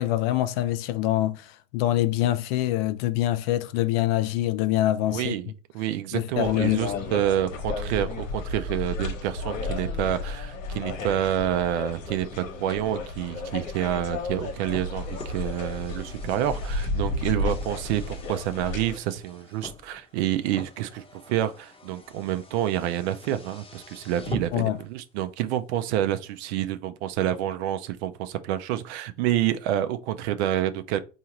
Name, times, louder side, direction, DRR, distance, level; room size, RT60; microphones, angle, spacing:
voice 1, 0.0-5.3 6.1-7.1 24.5-24.8, left 14 dB, 50° left, 0.4 m, -25 dB
voice 2, 5.1-31.0, right 12 dB, 55° right, 0.6 m, -28 dB
sound 1, 6.3-19.0, left 3 dB, 70° left, 1.3 m, -33 dB
Car, 14.2-24.8, left 2 dB, 15° left, 0.9 m, -44 dB
4.5 x 2.8 x 2.9 m
hypercardioid pair, 95°, 39 cm